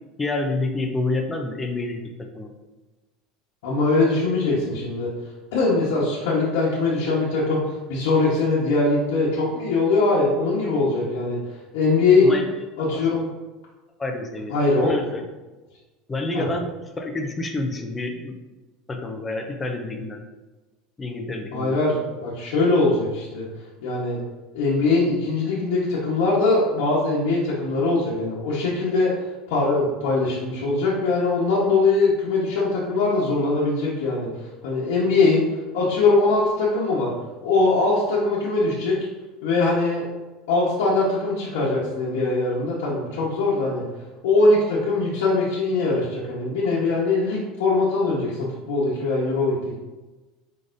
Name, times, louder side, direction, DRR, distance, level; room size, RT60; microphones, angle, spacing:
voice 1, 0.2-2.0 2.3-2.5 12.2-12.5 14.0-14.5 14.8-15.2 16.1-16.7 17.0-18.3 18.9-20.2 21.0-21.8, left 2 dB, 10° left, 3 dB, 0.5 m, -28 dB
voice 2, 3.6-5.1 5.5-11.4 11.7-12.4 12.8-13.3 14.5-15.1 16.3-16.4 21.5-23.5 23.8-24.2 24.5-29.1 29.5-34.3 34.6-35.4 35.7-37.1 37.4-39.0 39.4-40.1 40.5-43.8 44.2-49.8, left 3 dB, 85° left, -7 dB, 1.0 m, -21 dB
4.8 x 3.9 x 2.6 m, 1.2 s
cardioid pair, 170°, 0 cm